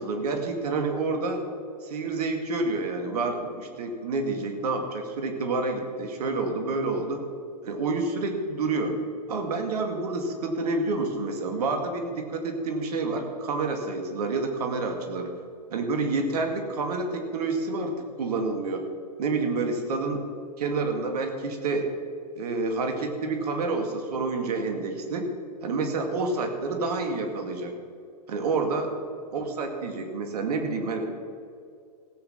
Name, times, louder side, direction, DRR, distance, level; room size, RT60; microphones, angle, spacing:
voice 1, 0.0-1.4 1.8-7.2 7.6-9.0 9.3-15.3 15.7-17.9 18.2-18.8 19.2-20.2 20.6-21.9 22.4-25.3 25.6-27.7 28.3-28.9 29.3-31.1, right 3 dB, 65° right, 5 dB, 2.2 m, -28 dB
16.5 x 8.8 x 5.8 m, 2.3 s
hypercardioid pair, 110°, 21 cm